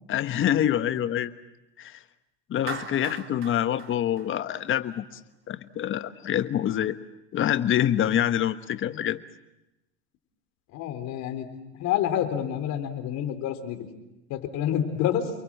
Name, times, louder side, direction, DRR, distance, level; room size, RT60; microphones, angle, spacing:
voice 1, 0.1-1.3 1.8-2.0 2.5-5.2 5.5-7.0 7.3-9.2, left 11 dB, 35° left, 11 dB, 1.4 m, -26 dB
Clapping, 2.7-5.0, right 7 dB, 35° right, 3.8 m, -40 dB
voice 2, 10.7-11.5 11.8-13.9 14.3-15.3, left 10 dB, 55° left, 8 dB, 4.0 m, -28 dB
29.5 x 23.0 x 7.7 m, 0.94 s
supercardioid pair, 110°, 34 cm